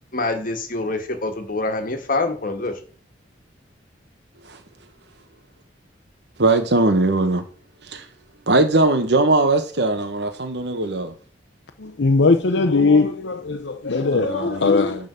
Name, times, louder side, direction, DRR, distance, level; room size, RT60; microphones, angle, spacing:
voice 1, 0.1-2.7, left 2 dB, 50° left, 1.5 m, -25 dB
voice 2, 6.4-7.4 7.8-8.1 8.5-11.1 14.1-15.1, right 2 dB, 65° right, 1.1 m, -20 dB
voice 3, 11.8-15.1, left 3 dB, 80° left, 0.7 m, -19 dB
10.5 x 3.9 x 6.8 m
head